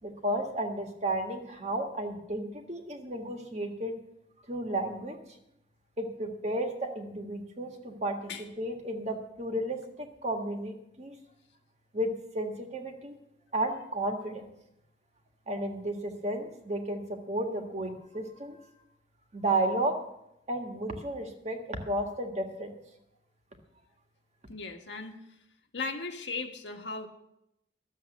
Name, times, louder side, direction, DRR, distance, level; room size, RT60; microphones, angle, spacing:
voice 1, 0.0-3.9 4.5-5.2 6.0-11.1 11.9-13.1 13.5-14.5 15.5-18.6 19.3-19.9 20.5-22.8, right 1 dB, 35° right, 3 dB, 1.6 m, -33 dB
voice 2, 24.5-25.2 25.7-27.1, left 3 dB, 70° left, 4 dB, 1.4 m, -37 dB
12.5 x 7.5 x 7.9 m, 0.82 s
head